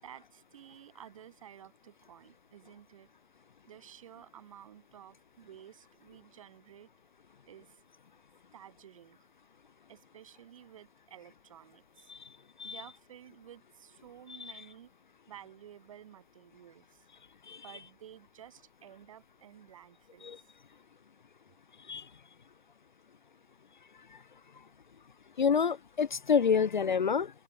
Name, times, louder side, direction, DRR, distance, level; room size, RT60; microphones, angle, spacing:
voice 1, 0.0-3.1 3.7-6.9 7.5-7.8 8.5-9.2 9.9-12.1 12.6-14.9 15.3-17.1 17.6-20.5, right 10 dB, 35° right, 7.0 m, -53 dB
voice 2, 25.4-27.3, left 6 dB, 50° left, 1.0 m, -27 dB
open air
hypercardioid pair, 160°, 30 cm